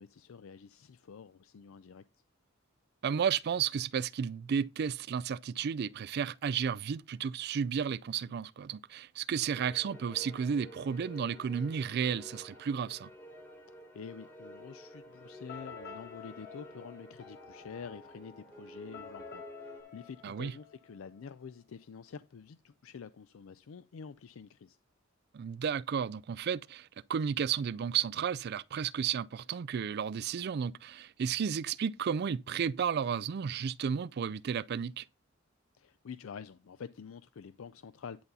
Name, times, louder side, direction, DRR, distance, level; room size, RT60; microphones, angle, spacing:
voice 1, 0.0-2.0 13.9-24.8 35.7-38.2, left 6 dB, 80° left, 0.4 m, -48 dB
voice 2, 3.0-13.1 20.2-20.5 25.3-35.0, right 7 dB, 50° right, 0.3 m, -33 dB
sound 1, 9.5-19.8, equal, 5° left, 2.6 m, -51 dB
sound 2, 15.5-21.2, left 6 dB, 55° left, 2.4 m, -50 dB
10.5 x 4.1 x 5.3 m
head